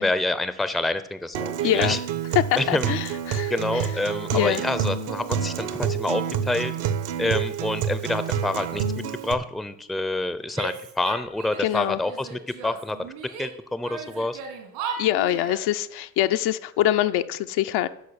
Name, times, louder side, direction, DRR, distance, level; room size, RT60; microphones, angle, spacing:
voice 1, 0.0-2.0 2.6-2.9 3.5-6.7 7.2-8.9 9.2-13.1 13.4-14.4, left 2 dB, ahead, 13 dB, 0.7 m, -27 dB
Acoustic guitar, 1.3-9.3, right 8 dB, 55° right, 1.2 m, -28 dB
voice 2, 1.6-2.0 2.5-3.9 4.3-4.6 11.6-12.0 15.0-17.9, left 13 dB, 55° left, 9 dB, 0.7 m, -24 dB
Female speech woman speaking / Yell, 10.5-11.7 12.0-13.5 13.8-15.7, right 5 dB, 75° right, 3.2 m, -36 dB
10.5 x 6.2 x 7.2 m, 0.79 s
hypercardioid pair, 60°, 49 cm